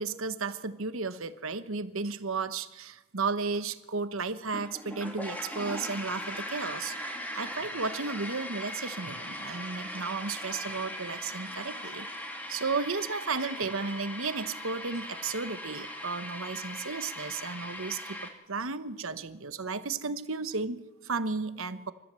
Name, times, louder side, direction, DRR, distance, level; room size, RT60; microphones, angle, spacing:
voice 1, 0.0-6.9 7.3-12.1 12.5-18.2 18.5-21.9, right 4 dB, 70° right, 11 dB, 1.1 m, -34 dB
sound 1, 4.5-18.3, left 1 dB, 10° left, 2.1 m, -39 dB
27.0 x 14.0 x 7.6 m, 1.1 s
head